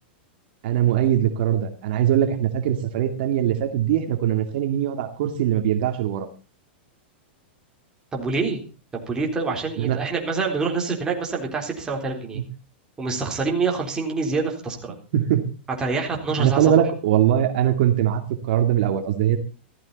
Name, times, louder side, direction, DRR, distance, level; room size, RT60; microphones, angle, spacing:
voice 1, 0.6-6.3 9.8-10.0 12.3-12.4 15.1-15.4 16.4-19.4, right 10 dB, 55° right, 6 dB, 2.2 m, -21 dB
voice 2, 8.1-8.6 8.9-12.4 13.0-15.0 15.8-16.7, right 4 dB, 10° right, 0 dB, 3.8 m, -26 dB
15.5 x 14.0 x 4.1 m, 0.33 s
supercardioid pair, 155°, 6 cm